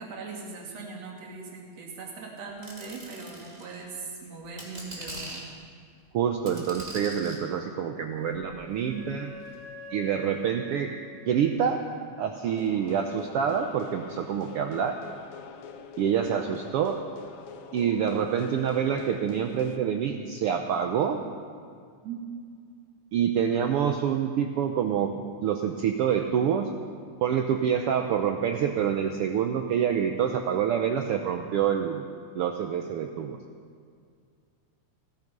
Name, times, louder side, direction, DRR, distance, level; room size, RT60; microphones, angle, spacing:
voice 1, 0.0-5.4 8.9-9.1 22.0-22.2, right 4 dB, 60° right, 0 dB, 3.1 m, -40 dB
sound 1, 2.6-3.8 4.4-5.5 6.5-7.4 8.3-9.0 9.5-9.6, right 1 dB, 15° right, 2.1 m, -42 dB
voice 2, 6.1-9.3 9.9-10.9 11.3-11.8 12.2-14.9 16.0-17.0 17.7-21.2 23.1-25.1 25.4-26.7 27.2-32.0 32.3-33.4, right 8 dB, 85° right, 5 dB, 1.2 m, -26 dB
Wind instrument woodwind instrument, 7.8-12.5, left 3 dB, 45° left, 3.3 m, -47 dB
sound 2, 12.4-19.8, left 6 dB, 90° left, 1.1 m, -45 dB
16.5 x 13.5 x 5.3 m, 2.2 s
omnidirectional pair, 3.4 m